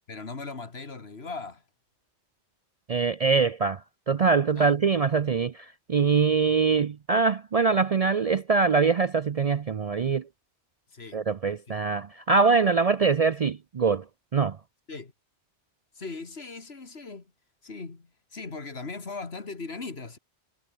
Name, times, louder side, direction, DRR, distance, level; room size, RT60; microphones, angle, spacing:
voice 1, 0.1-1.6 4.5-4.8 10.9-11.2 14.9-15.1 15.9-17.3 17.6-20.2, left 4 dB, 65° left, 2.5 m, -39 dB
voice 2, 2.9-3.8 4.1-10.2 11.1-14.0 14.3-14.6, right 5 dB, 45° right, 0.5 m, -23 dB
omnidirectional pair, 1.1 m